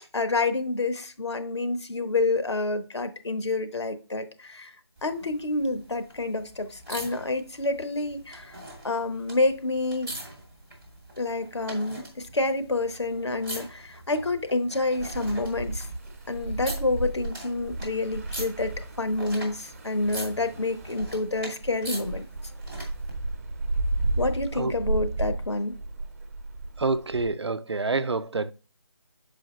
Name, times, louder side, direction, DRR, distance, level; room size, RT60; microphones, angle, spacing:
voice 1, 0.1-4.7 5.0-10.1 11.2-15.9 16.3-22.3 24.2-25.7, left 2 dB, 85° left, 1.1 m, -28 dB
sound 1, 4.9-23.1 24.4-24.5, right 1 dB, ahead, 0.5 m, -43 dB
sound 2, 15.0-27.3, right 2 dB, 35° right, 1.0 m, -33 dB
voice 2, 26.8-28.5, right 3 dB, 80° right, 0.7 m, -27 dB
6.4 x 4.9 x 3.1 m
figure-of-eight pair, 170°, 14 cm